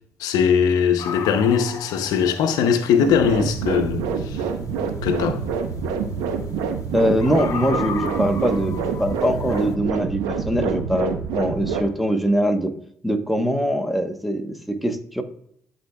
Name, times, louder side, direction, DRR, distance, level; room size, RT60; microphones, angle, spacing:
voice 1, 0.2-4.4 5.0-5.4, left 7 dB, 80° left, 0.7 m, -20 dB
sound 1, 1.0-9.8, left 6 dB, 60° left, 1.0 m, -37 dB
sound 2, 3.0-11.8, right 6 dB, 90° right, 0.7 m, -27 dB
voice 2, 6.9-12.7 13.0-15.2, equal, ahead, 1.0 m, -22 dB
11.5 x 4.3 x 2.3 m
supercardioid pair, 65°, 6 cm